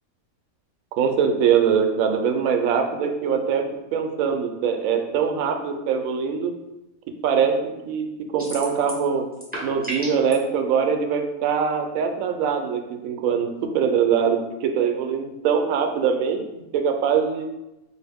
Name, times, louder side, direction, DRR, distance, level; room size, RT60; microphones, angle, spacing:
voice 1, 1.0-3.6 3.9-6.5 7.2-9.2 9.6-17.5, right 7 dB, 75° right, 5 dB, 1.0 m, -23 dB
sound 1, 8.4-9.1 9.3-10.3, right 1 dB, 5° right, 0.9 m, -33 dB
4.6 x 2.5 x 3.4 m, 0.98 s
omnidirectional pair, 1.5 m